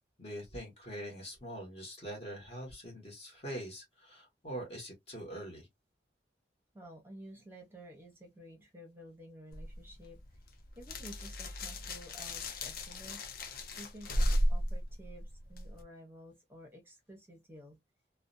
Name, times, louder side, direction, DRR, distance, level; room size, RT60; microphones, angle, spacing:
voice 1, 0.2-5.7, right 1 dB, 35° left, 1.1 m, -43 dB
voice 2, 6.7-10.2 10.8-17.8, equal, 15° right, 0.8 m, -52 dB
sound 1, 9.5-15.8, equal, 55° left, 0.5 m, -35 dB
2.5 x 2.1 x 2.5 m
head